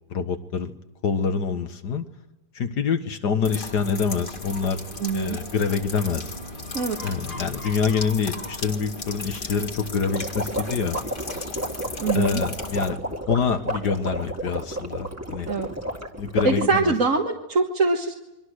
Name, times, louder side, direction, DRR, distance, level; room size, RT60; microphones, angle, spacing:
voice 1, 0.1-0.7 1.0-2.0 2.6-4.8 5.1-6.3 7.0-11.0 12.1-15.5 16.2-16.9, left 5 dB, 70° left, 8 dB, 2.0 m, -26 dB
sound 1, 3.4-12.9, left 2 dB, 30° left, 1.9 m, -36 dB
voice 2, 5.0-5.4 6.7-7.0 12.0-12.4 15.5-15.7 16.4-18.1, right 4 dB, 50° right, 0 dB, 2.0 m, -23 dB
sound 2, 10.1-16.7, right 1 dB, 10° right, 2.0 m, -31 dB
29.5 x 23.5 x 6.5 m, 0.95 s
omnidirectional pair, 1.9 m